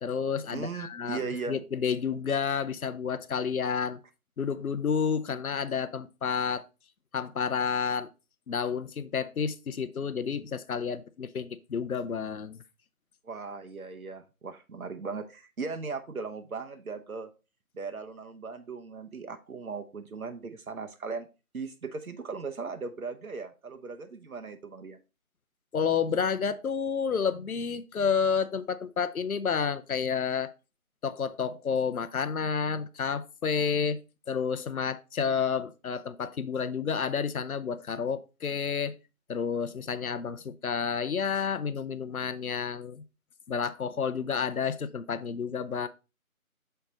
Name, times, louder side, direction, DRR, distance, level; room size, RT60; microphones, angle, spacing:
voice 1, 0.0-4.0 4.4-6.6 7.1-8.1 8.5-12.6 25.7-30.5 31.0-34.0 34.3-39.0 39.3-43.0 43.5-45.9, left 6 dB, 75° left, 0.8 m, -30 dB
voice 2, 0.5-1.6 13.2-17.3 17.7-21.3 21.5-25.0, right 4 dB, 75° right, 0.9 m, -38 dB
6.6 x 4.6 x 3.9 m
figure-of-eight pair, 175°, 43 cm